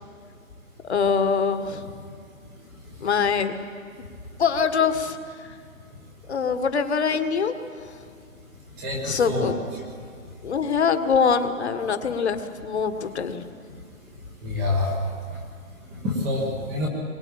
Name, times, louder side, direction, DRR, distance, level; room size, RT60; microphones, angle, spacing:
voice 1, 0.8-1.9 3.0-3.5 4.4-5.2 5.4-5.5 6.3-7.5 9.1-9.5 10.4-12.4 12.6-13.4, left 6 dB, 50° left, 8 dB, 1.7 m, -23 dB
voice 2, 8.8-9.5 14.4-15.0 15.3-15.4 15.9-16.9, left 2 dB, 5° right, -1 dB, 1.0 m, -27 dB
23.0 x 20.0 x 8.8 m, 2.2 s
hypercardioid pair, 180°, 41 cm